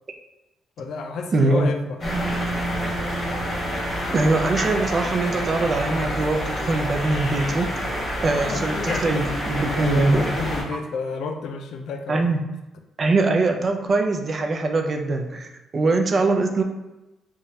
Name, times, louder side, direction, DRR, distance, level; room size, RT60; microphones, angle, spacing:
voice 1, 0.8-2.0 8.3-12.2, left 4 dB, 75° left, 5 dB, 0.3 m, -31 dB
voice 2, 1.3-1.7 4.1-7.9 8.2-10.3 12.1-12.4 13.0-16.6, right 3 dB, 40° right, 4 dB, 0.4 m, -22 dB
sound 1, 2.0-10.6, equal, 35° left, 1.4 m, -27 dB
3.0 x 2.2 x 2.7 m, 0.99 s
cardioid pair, 90°, 0 cm